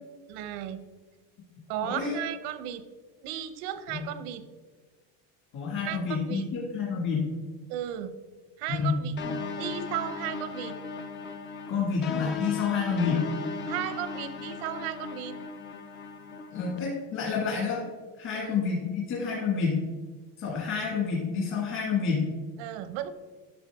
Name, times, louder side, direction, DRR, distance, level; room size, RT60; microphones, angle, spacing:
voice 1, 0.3-0.8 1.7-2.8 3.2-4.4 5.8-6.5 7.7-8.2 8.6-9.1 9.5-10.8 13.7-15.4 18.3-18.5 22.6-23.1, right 11 dB, 80° right, 12 dB, 0.9 m, -35 dB
voice 2, 1.8-2.2 3.9-4.0 5.5-7.3 8.7-8.9 11.7-13.2 16.5-17.8 18.2-19.8 20.4-22.3, left 5 dB, 45° left, -3 dB, 2.1 m, -28 dB
sound 1, 9.2-16.8, left 5 dB, 30° left, 0.5 m, -37 dB
11.5 x 6.4 x 3.6 m, 1.4 s
cardioid pair, 165°, 40 cm